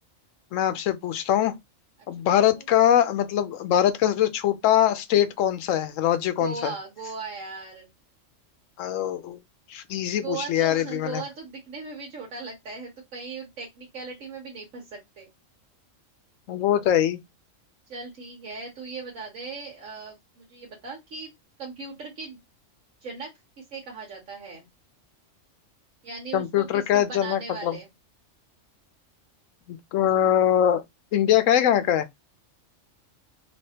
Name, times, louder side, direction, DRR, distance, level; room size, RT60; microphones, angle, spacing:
voice 1, 0.5-1.5 2.1-6.7 8.8-9.4 9.7-11.2 16.5-17.2 26.3-27.8 29.7-30.8 31.1-32.1, left 10 dB, 80° left, 0.9 m, -22 dB
voice 2, 6.4-7.9 10.2-15.3 17.9-21.3 21.6-22.4 23.0-23.3 23.6-24.7 26.0-27.9, right 4 dB, 80° right, 1.4 m, -38 dB
3.4 x 2.9 x 2.8 m
omnidirectional pair, 1.3 m